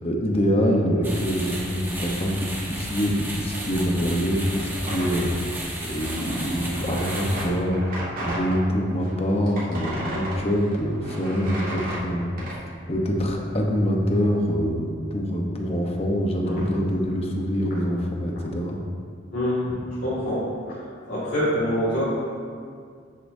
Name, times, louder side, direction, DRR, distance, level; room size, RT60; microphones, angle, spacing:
voice 1, 0.0-12.3 12.9-18.8, equal, 30° left, 0 dB, 1.0 m, -25 dB
sound 1, 1.0-7.5, right 1 dB, 10° right, 1.3 m, -34 dB
sound 2, 4.9-8.6 9.0-12.6, right 1 dB, 50° right, 2.1 m, -34 dB
voice 2, 19.3-19.6 20.0-20.8 21.1-22.0, equal, 60° left, -11 dB, 2.3 m, -25 dB
9.9 x 8.3 x 2.7 m, 2.1 s
head